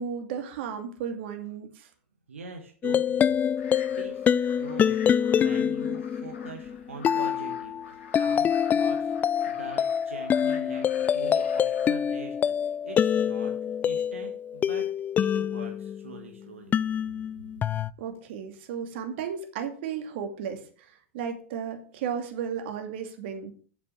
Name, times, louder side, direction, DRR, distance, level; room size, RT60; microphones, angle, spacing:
voice 1, 0.0-1.9 18.0-23.5, right 7 dB, 60° right, 5 dB, 2.4 m, -34 dB
voice 2, 2.3-3.3 4.0-5.0 5.3-14.9 15.2-16.8, right 5 dB, 85° right, 3 dB, 1.7 m, -43 dB
sound 1, 2.8-16.2 16.7-17.9, left 8 dB, 25° left, 0.4 m, -26 dB
sound 2, 3.6-11.9, left 5 dB, 75° left, 3.0 m, -49 dB
9.0 x 7.7 x 6.2 m, 0.42 s
hypercardioid pair, 95°, 7 cm